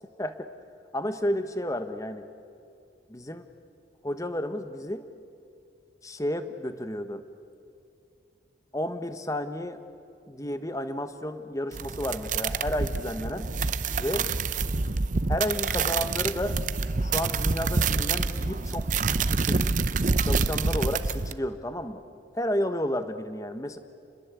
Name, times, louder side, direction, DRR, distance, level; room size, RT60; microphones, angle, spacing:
voice 1, 0.2-0.5 0.9-2.3 3.1-3.4 4.0-5.1 6.0-7.2 8.7-9.8 10.3-13.5 14.0-14.3 15.3-16.6 17.0-19.7 20.2-22.0 22.3-23.8, left 1 dB, 15° left, 10 dB, 1.1 m, -32 dB
sound 1, 11.7-21.3, right 4 dB, 45° right, 0.7 m, -27 dB
29.5 x 21.0 x 8.3 m, 2.5 s
head